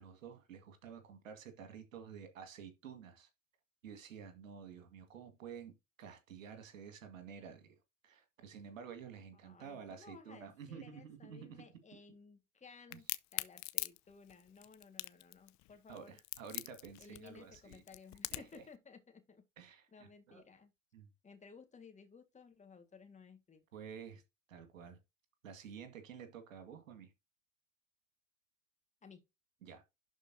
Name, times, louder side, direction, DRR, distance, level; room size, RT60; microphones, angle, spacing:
voice 1, 0.0-3.3 3.8-5.7 6.0-7.8 8.0-11.7 12.9-13.0 15.9-17.8 18.3-18.6 19.6-20.4 20.9-21.1 23.7-24.2 24.5-25.0 25.4-27.1 29.6-29.8, right 7 dB, 80° right, 2.1 m, -51 dB
voice 2, 9.4-13.1 13.3-16.2 17.0-19.4 19.9-20.7 21.2-23.6 29.0-29.2, left 5 dB, 20° left, 1.8 m, -57 dB
Crack, 12.9-18.6, left 21 dB, 50° left, 0.7 m, -42 dB
11.5 x 4.5 x 2.8 m
hypercardioid pair, 80°, 38 cm